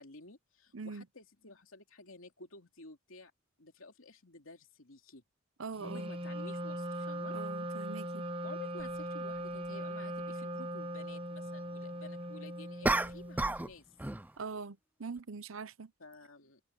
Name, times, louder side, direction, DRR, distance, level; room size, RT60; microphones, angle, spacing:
voice 1, 0.0-3.3 3.6-5.2 5.8-7.3 8.4-13.8 16.0-16.6, left 3 dB, 80° left, 2.9 m, -52 dB
voice 2, 0.7-1.0 5.6-6.1 7.3-8.2 14.4-15.9, right 4 dB, 75° right, 0.8 m, -43 dB
Wind instrument woodwind instrument, 5.8-13.6, right 1 dB, 25° right, 1.3 m, -39 dB
sound 1, 8.8-8.9 12.8-13.7 14.0-14.3, right 2 dB, 10° right, 0.4 m, -31 dB
head